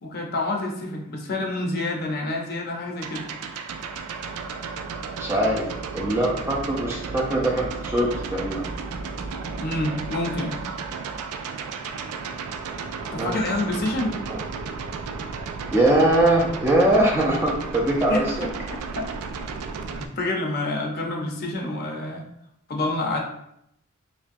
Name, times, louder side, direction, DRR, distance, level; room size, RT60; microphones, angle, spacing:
voice 1, 0.0-3.3 9.6-10.6 13.1-14.2 18.1-18.5 18.9-19.1 20.0-22.2 22.7-23.2, left 2 dB, 45° left, 0 dB, 0.6 m, -28 dB
sound 1, 3.0-20.1, right 4 dB, 85° right, 0.4 m, -33 dB
voice 2, 5.2-5.7 5.9-8.6 13.2-13.3 14.3-14.4 15.7-18.5, right 1 dB, 10° right, -2 dB, 0.4 m, -21 dB
5.1 x 2.2 x 2.6 m, 0.75 s
head